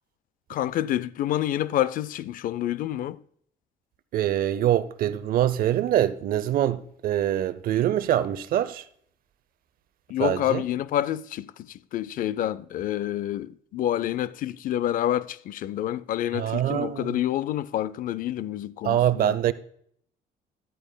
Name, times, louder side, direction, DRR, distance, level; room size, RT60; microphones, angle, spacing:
voice 1, 0.5-3.2 10.1-19.4, left 12 dB, 55° left, 0.4 m, -28 dB
voice 2, 4.1-8.8 10.2-10.6 16.4-17.1 18.8-19.5, right 11 dB, 60° right, 0.6 m, -24 dB
12.5 x 8.8 x 2.2 m
cardioid pair, 110°, 17 cm